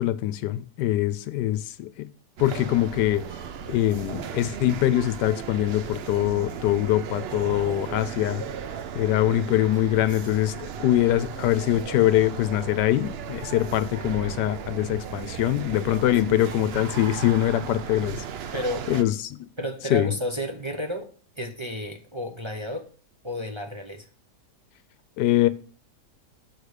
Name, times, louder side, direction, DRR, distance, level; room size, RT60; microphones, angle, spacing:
voice 1, 0.0-2.1 2.4-3.2 3.7-8.4 8.9-18.5 18.9-19.4 19.9-20.1 25.2-25.5, left 13 dB, 90° left, 1.2 m, -23 dB
sound 1, 2.4-19.0, right 7 dB, 70° right, 0.5 m, -36 dB
voice 2, 18.5-18.9 19.6-21.1 21.4-22.9 23.2-24.1, equal, 25° right, 0.7 m, -32 dB
6.7 x 4.9 x 6.5 m
omnidirectional pair, 1.8 m